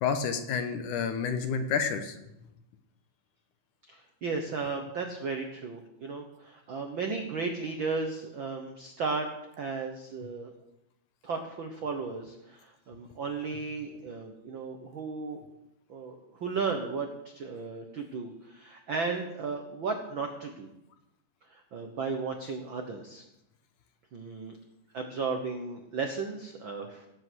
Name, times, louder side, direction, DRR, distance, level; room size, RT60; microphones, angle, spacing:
voice 1, 0.0-2.2, left 6 dB, 70° left, 8 dB, 2.5 m, -29 dB
voice 2, 3.9-9.3 9.6-10.5 11.2-15.4 15.9-20.7 21.5-23.2 24.1-24.5 24.9-27.1, right 4 dB, 65° right, 4 dB, 1.2 m, -35 dB
17.5 x 8.2 x 6.3 m, 0.89 s
omnidirectional pair, 3.9 m